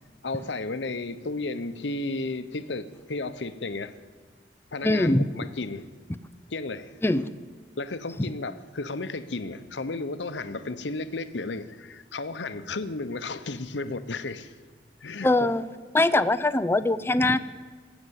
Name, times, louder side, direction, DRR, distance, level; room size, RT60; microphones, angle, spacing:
voice 1, 0.2-4.0 4.7-5.9 6.5-6.9 7.8-14.5 15.0-15.3, left 3 dB, 80° left, 0.9 m, -33 dB
voice 2, 4.8-5.3 7.0-7.3 15.2-15.6 15.9-17.4, left 2 dB, 15° left, 0.5 m, -22 dB
18.5 x 8.2 x 8.2 m
head